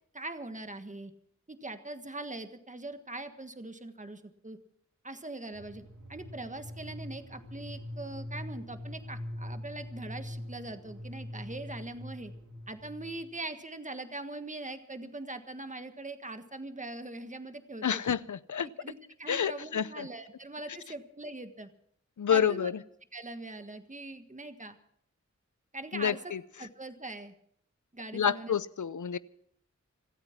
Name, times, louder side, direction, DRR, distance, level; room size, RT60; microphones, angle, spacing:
voice 1, 0.1-1.1 1.5-4.6 5.0-5.8 6.1-12.3 12.7-18.0 18.8-21.7 22.3-22.7 23.1-24.8 25.7-26.2 26.6-27.3 27.9-28.6, right 2 dB, 25° right, 8 dB, 1.5 m, -42 dB
sound 1, 5.5-13.4, left 1 dB, 85° right, 2.3 m, -43 dB
voice 2, 17.8-18.7 19.3-20.1 22.2-22.8 25.9-26.4 28.1-29.2, left 8 dB, 80° left, 17 dB, 0.7 m, -29 dB
26.0 x 8.9 x 5.9 m, 0.67 s
cardioid pair, 40°, 30 cm